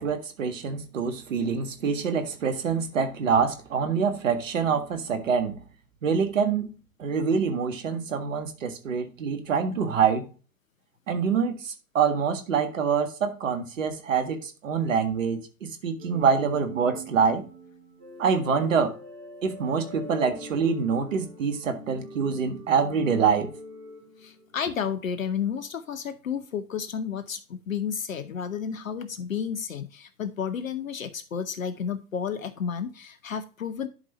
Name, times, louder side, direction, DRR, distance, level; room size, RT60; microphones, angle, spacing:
voice 1, 0.0-5.5 6.0-6.7 7.0-10.3 11.1-17.4 18.2-18.9 19.4-23.5, right 6 dB, 55° right, 1.7 m, -25 dB
sound 1, 16.0-25.0, right 1 dB, 70° right, 4.4 m, -44 dB
voice 2, 24.2-33.9, left 7 dB, 60° left, 0.9 m, -32 dB
11.0 x 5.4 x 2.9 m
figure-of-eight pair, 115°, 46 cm